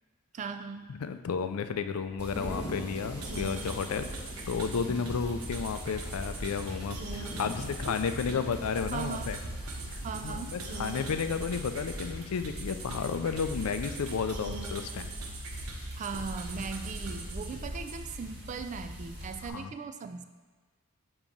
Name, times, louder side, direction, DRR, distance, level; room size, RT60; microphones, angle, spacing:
voice 1, 0.3-0.9 7.9-8.0 8.9-9.3 10.0-10.5 16.0-20.2, right 5 dB, 35° right, 8 dB, 0.3 m, -38 dB
voice 2, 0.9-4.1 4.4-9.4 9.9-15.1 19.4-19.7, left 6 dB, 75° left, 9 dB, 0.4 m, -32 dB
sound 1, 2.2-19.5, equal, 55° right, 1.9 m, -44 dB
Thunder / Rain, 2.3-12.3, equal, 15° left, 0.7 m, -45 dB
sound 2, 3.2-18.0, right 2 dB, 70° right, 0.8 m, -41 dB
7.1 x 2.9 x 5.3 m, 1.3 s
head